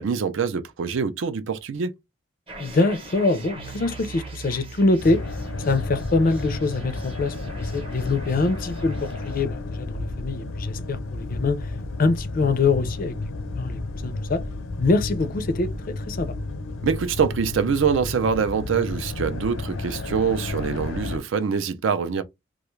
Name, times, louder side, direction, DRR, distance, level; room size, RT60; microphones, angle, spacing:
voice 1, 0.0-1.9 16.8-22.2, right 6 dB, 70° right, 0.4 m, -24 dB
sound 1, 2.5-9.4, right 2 dB, 25° right, 0.7 m, -44 dB
voice 2, 2.6-5.2 5.7-11.7 12.0-13.1 13.6-14.4 14.8-16.3, left 3 dB, 45° left, 0.4 m, -24 dB
sound 2, 3.5-14.7, right 4 dB, 90° right, 1.0 m, -45 dB
sound 3, 5.0-21.2, left 2 dB, 90° left, 0.6 m, -32 dB
2.4 x 2.2 x 3.0 m
head